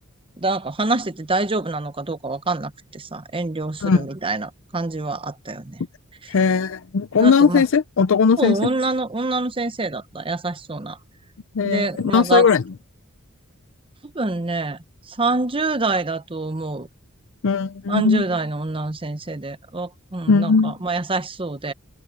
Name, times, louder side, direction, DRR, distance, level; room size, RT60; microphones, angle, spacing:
voice 1, 0.4-5.8 7.2-7.6 8.4-11.0 11.6-12.5 14.1-14.8 15.1-16.9 17.9-21.7, right 2 dB, 25° right, 0.9 m, -26 dB
voice 2, 6.3-8.6 11.5-12.6 17.4-18.2 20.3-20.7, left 5 dB, 65° left, 0.5 m, -18 dB
head